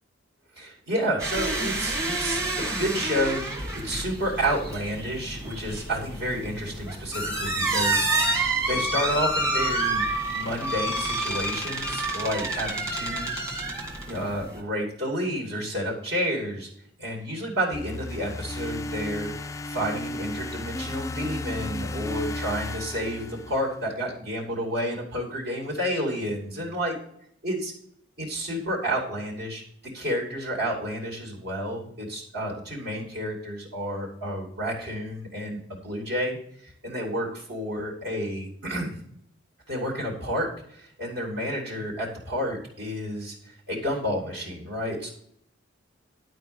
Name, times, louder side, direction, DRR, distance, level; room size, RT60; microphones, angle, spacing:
voice 1, 0.6-10.0 10.3-13.3 14.1-16.7 17.0-26.9 27.4-27.7 28.2-29.6 29.9-39.0 39.7-45.1, equal, 55° right, -1 dB, 2.7 m, -30 dB
sound 1, 1.2-14.6, right 2 dB, 15° right, 1.8 m, -28 dB
sound 2, 17.7-23.9, left 1 dB, 15° left, 0.3 m, -34 dB
11.5 x 4.7 x 6.9 m, 0.67 s
head